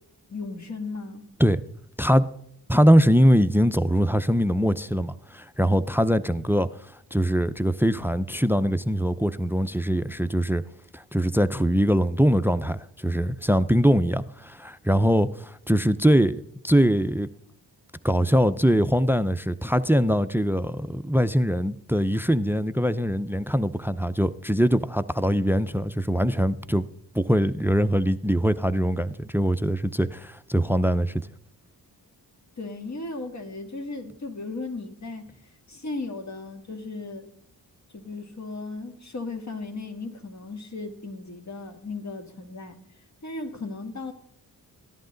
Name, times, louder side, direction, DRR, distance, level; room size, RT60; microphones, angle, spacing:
voice 1, 0.3-1.3 32.6-35.3 35.7-37.3 37.9-42.8 43.2-44.1, left 3 dB, 45° left, 1.8 m, -36 dB
voice 2, 2.7-6.7 7.1-10.6 10.9-17.3 18.0-26.9 27.1-31.2, equal, 5° right, 0.4 m, -22 dB
14.5 x 11.0 x 3.9 m
cardioid pair, 70°, 40 cm